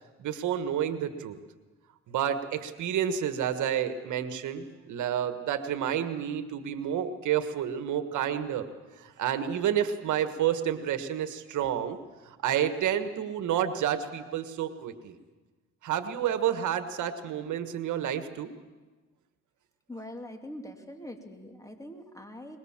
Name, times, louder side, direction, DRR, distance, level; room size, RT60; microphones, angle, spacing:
voice 1, 0.2-1.4 2.1-8.7 9.0-12.0 12.3-15.2 15.8-18.5, right 9 dB, 75° right, 10 dB, 1.5 m, -30 dB
voice 2, 19.9-22.6, left 1 dB, 10° left, 5 dB, 2.9 m, -43 dB
23.0 x 21.5 x 7.4 m, 1.3 s
cardioid pair, 90°, 30 cm